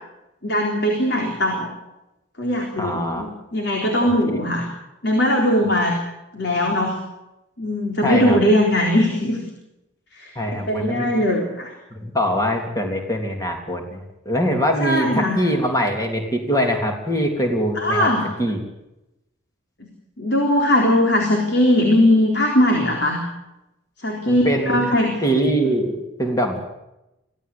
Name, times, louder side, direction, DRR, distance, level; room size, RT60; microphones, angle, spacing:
voice 1, 0.4-1.7 2.4-4.7 5.0-5.9 6.3-7.0 7.6-9.4 10.1-10.3 10.7-11.7 14.8-15.4 17.8-18.3 20.2-23.2 24.0-25.1, left 1 dB, 60° left, 1 dB, 3.9 m, -19 dB
voice 2, 2.8-3.2 4.0-4.1 8.0-8.4 10.3-11.1 11.9-14.0 14.2-18.1 18.4-18.6 24.3-24.8 25.2-26.6, equal, 20° left, 3 dB, 3.3 m, -22 dB
24.5 x 16.0 x 8.6 m, 0.91 s
head